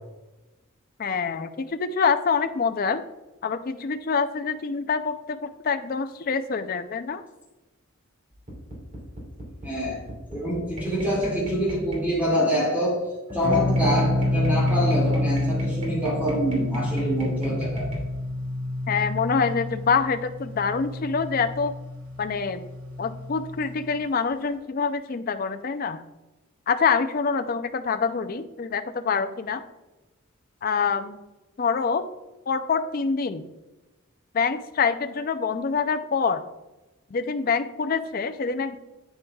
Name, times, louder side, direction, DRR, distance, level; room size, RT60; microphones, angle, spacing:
voice 1, 1.0-3.0 3.4-7.2 18.9-21.7 22.2-22.7 23.0-26.0 26.7-29.6 30.6-31.2 31.6-32.0 32.5-33.5 34.3-36.4 37.1-38.8, left 5 dB, 40° left, 9 dB, 0.4 m, -26 dB
sound 1, 8.3-12.2 13.3-18.0, right 1 dB, 35° right, 2.6 m, -36 dB
voice 2, 9.6-10.0 10.3-17.9, equal, 5° right, -5 dB, 2.1 m, -26 dB
sound 2, 13.4-24.0, left 1 dB, 75° right, 2.0 m, -28 dB
8.8 x 8.5 x 2.3 m, 1.1 s
head